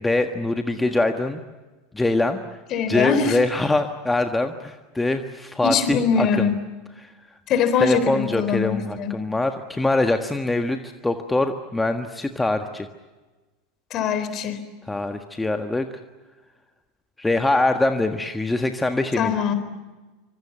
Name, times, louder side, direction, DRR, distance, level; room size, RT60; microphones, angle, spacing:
voice 1, 0.0-1.4 1.9-2.4 2.9-6.5 7.0-7.1 7.8-12.9 14.9-15.9 17.2-19.3, left 2 dB, 10° left, 6 dB, 1.6 m, -23 dB
voice 2, 2.7-3.4 5.6-6.6 7.5-9.2 13.9-14.6 19.2-19.5, left 6 dB, 40° left, 11 dB, 3.9 m, -22 dB
26.5 x 26.0 x 7.3 m, 1.2 s
figure-of-eight pair, 80°, 0 cm